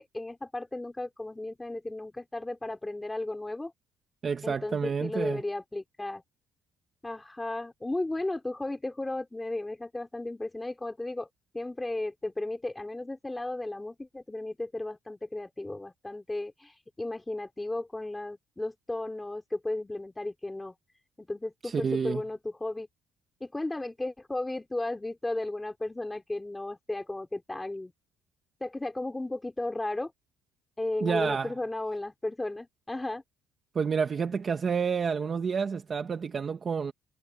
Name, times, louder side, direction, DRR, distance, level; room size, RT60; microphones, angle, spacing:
voice 1, 0.0-3.7 4.4-6.2 7.0-11.3 11.5-20.7 21.2-22.9 23.4-27.9 28.6-30.1 30.8-33.2, left 2 dB, 10° left, 3.1 m, -34 dB
voice 2, 4.2-5.4 21.6-22.2 31.0-31.5 33.7-36.9, right 6 dB, 30° right, 1.1 m, -29 dB
cardioid pair, 155°, 0 cm